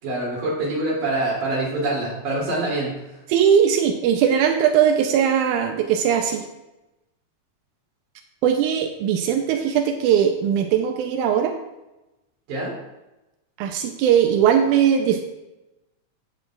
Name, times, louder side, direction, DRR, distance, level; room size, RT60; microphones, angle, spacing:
voice 1, 0.0-2.9 12.5-12.7, right 2 dB, 70° right, -5 dB, 4.4 m, -25 dB
voice 2, 3.3-6.4 8.4-11.5 13.6-15.2, right 8 dB, 90° right, 4 dB, 2.1 m, -19 dB
16.0 x 6.2 x 2.4 m, 0.98 s
omnidirectional pair, 3.5 m